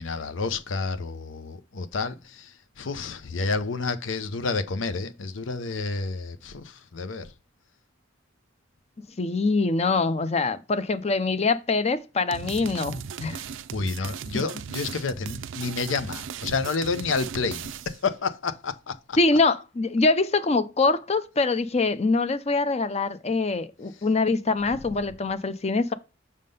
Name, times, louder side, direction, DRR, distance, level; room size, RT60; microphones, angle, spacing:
voice 1, 0.0-7.3 13.7-19.2, left 4 dB, 85° left, 0.7 m, -30 dB
voice 2, 9.2-13.4 14.3-14.4 19.2-25.9, left 3 dB, 35° left, 0.5 m, -24 dB
sound 1, 12.3-18.0, right 7 dB, 80° right, 0.4 m, -37 dB
6.6 x 3.7 x 5.3 m
head